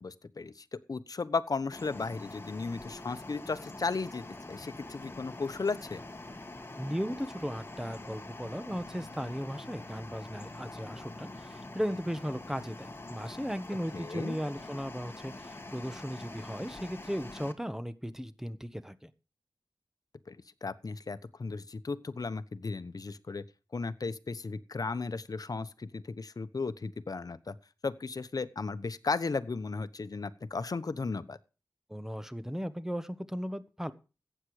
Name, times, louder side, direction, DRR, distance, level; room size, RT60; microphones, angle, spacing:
voice 1, 0.0-6.0 13.9-14.4 20.3-23.4 23.7-27.6 27.8-31.4, left 4 dB, 55° left, 13 dB, 1.0 m, -35 dB
sound 1, 1.7-17.5, left 2 dB, 30° left, 1.7 m, -45 dB
voice 2, 6.8-19.1 31.9-33.9, equal, 5° right, 12 dB, 1.3 m, -36 dB
15.0 x 9.0 x 4.9 m, 0.33 s
wide cardioid pair, 60°, 7 cm